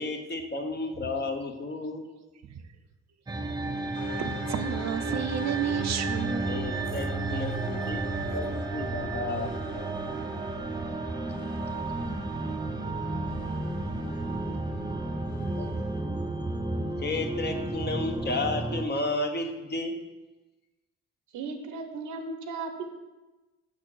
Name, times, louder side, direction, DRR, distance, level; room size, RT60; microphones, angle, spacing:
voice 1, 0.0-2.1 6.5-8.0 8.3-9.6 15.6-15.7 17.0-19.9, left 2 dB, 35° left, 4 dB, 1.0 m, -32 dB
sound 1, 3.3-18.8, right 2 dB, 15° right, 0.6 m, -32 dB
sound 2, 3.9-16.0, left 2 dB, 70° left, 1.6 m, -43 dB
voice 2, 4.2-6.7 7.6-7.8, right 8 dB, 60° right, 8 dB, 0.6 m, -32 dB
voice 3, 21.3-22.8, right 4 dB, 85° right, 6 dB, 1.0 m, -36 dB
6.1 x 4.4 x 6.2 m, 1.1 s
cardioid pair, 90°, 30 cm